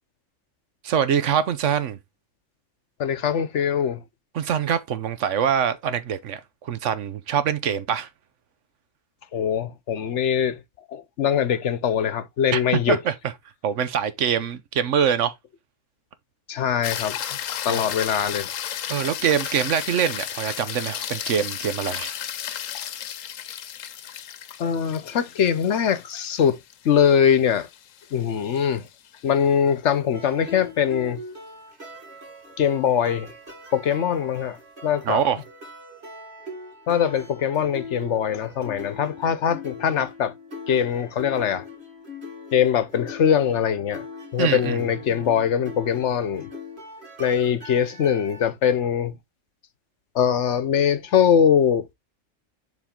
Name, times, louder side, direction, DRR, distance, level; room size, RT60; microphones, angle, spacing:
voice 1, 0.8-2.0 4.3-8.1 12.5-13.1 13.6-15.3 17.7-17.8 18.9-22.1 35.0-35.4 44.4-44.8, right 8 dB, 70° right, 1.1 m, -24 dB
voice 2, 3.0-4.0 9.3-10.6 10.9-13.0 16.5-17.2 17.6-18.5 24.6-26.6 26.8-27.7 28.1-28.9 29.2-31.2 32.6-33.3 33.7-34.6 34.8-35.2 36.9-40.3 40.7-41.6 42.5-44.0 44.3-46.5 47.2-49.1 50.1-51.9, left 8 dB, 70° left, 1.1 m, -22 dB
sound 1, 16.8-29.2 33.7-33.8, left 10 dB, 90° left, 1.1 m, -34 dB
sound 2, 30.1-48.4, left 3 dB, 55° right, 2.9 m, -41 dB
7.2 x 4.1 x 3.7 m
omnidirectional pair, 1.3 m